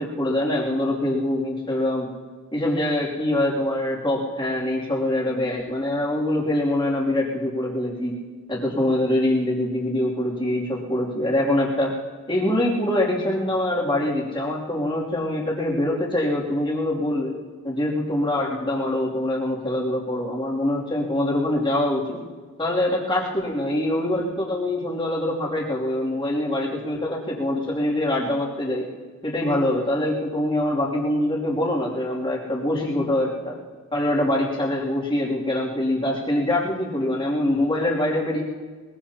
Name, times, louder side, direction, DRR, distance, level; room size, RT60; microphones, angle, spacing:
voice 1, 0.0-2.1 2.5-8.1 8.5-11.9 12.3-17.3 17.6-22.2 22.6-28.9 29.2-33.5 33.9-38.4, left 1 dB, 25° left, -5 dB, 2.9 m, -24 dB
22.0 x 21.5 x 2.9 m, 1.5 s
head